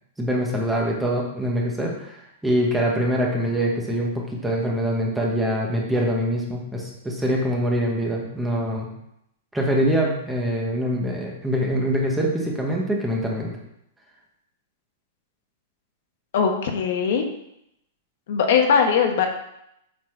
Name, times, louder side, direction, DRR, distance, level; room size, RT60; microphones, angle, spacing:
voice 1, 0.2-8.9 9.5-13.5, equal, 5° right, -2 dB, 0.9 m, -24 dB
voice 2, 16.3-17.3 18.3-19.3, left 6 dB, 50° left, 4 dB, 1.1 m, -20 dB
7.7 x 4.0 x 5.8 m, 0.80 s
supercardioid pair, 175°, 0 cm